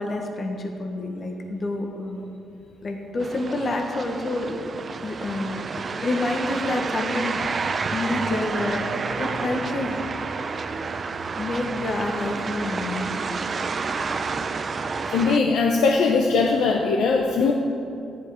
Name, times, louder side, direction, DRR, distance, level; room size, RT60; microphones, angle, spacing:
voice 1, 0.0-2.3 2.8-4.6 5.0-7.4 7.9-8.8 9.2-10.0 11.4-13.4, left 2 dB, 45° left, 3 dB, 1.5 m, -28 dB
sound 1, 3.2-15.4, right 4 dB, 40° right, 0.6 m, -30 dB
voice 2, 15.1-17.5, left 4 dB, 80° left, 1 dB, 0.9 m, -20 dB
13.5 x 10.5 x 5.1 m, 2.6 s
cardioid pair, 90°, 0 cm